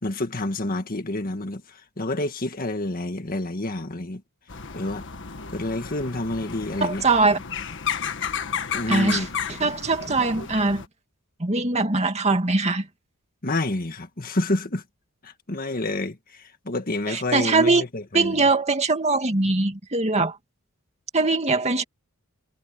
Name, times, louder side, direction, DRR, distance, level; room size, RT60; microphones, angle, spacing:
voice 1, 0.0-4.2 4.7-5.1 5.5-7.0 8.7-9.3 10.1-10.2 13.4-14.8 15.2-18.4, left 2 dB, 40° left, 1.8 m, -28 dB
sound 1, 4.5-10.9, left 7 dB, 60° left, 1.6 m, -32 dB
voice 2, 6.8-7.4 8.9-10.8 11.4-12.9 17.1-17.8 18.1-20.4 21.1-21.8, right 3 dB, 30° right, 2.2 m, -22 dB
head